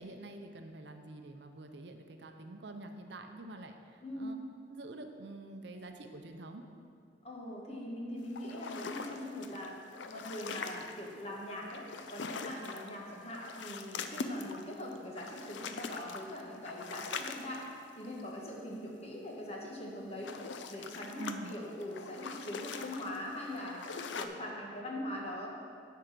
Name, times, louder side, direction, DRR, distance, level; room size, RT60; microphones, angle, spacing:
voice 1, 0.0-4.3 4.7-6.6 21.2-21.5, right 2 dB, 65° right, 5 dB, 0.7 m, -47 dB
voice 2, 4.0-4.4 7.2-9.8 10.1-17.6 18.0-20.3 20.7-23.8 24.1-25.5, left 1 dB, 35° left, -2 dB, 1.4 m, -42 dB
sound 1, 8.4-11.1 11.6-13.0 13.2-18.3 19.9-24.3, left 4 dB, 80° left, 0.5 m, -43 dB
9.5 x 4.7 x 6.7 m, 2.4 s
head